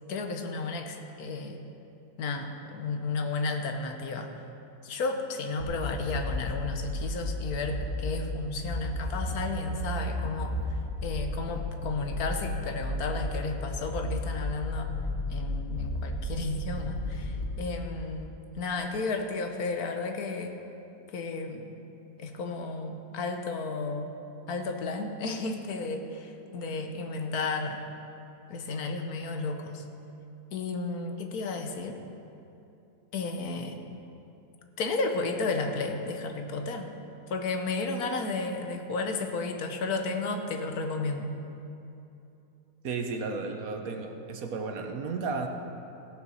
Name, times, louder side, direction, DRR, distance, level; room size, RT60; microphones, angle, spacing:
voice 1, 0.1-1.6 2.2-4.3 4.8-10.6 11.0-14.9 15.3-20.6 21.1-21.7 22.2-24.1 24.5-27.8 28.5-29.8 30.5-32.0 33.1-33.8 34.8-36.9 37.3-41.3, left 3 dB, 80° left, 5 dB, 1.4 m, -33 dB
sound 1, 5.6-17.5, left 1 dB, 60° left, 1.8 m, -33 dB
voice 2, 42.8-45.5, right 4 dB, 70° right, 5 dB, 1.3 m, -33 dB
16.0 x 6.9 x 6.4 m, 2.8 s
omnidirectional pair, 1.6 m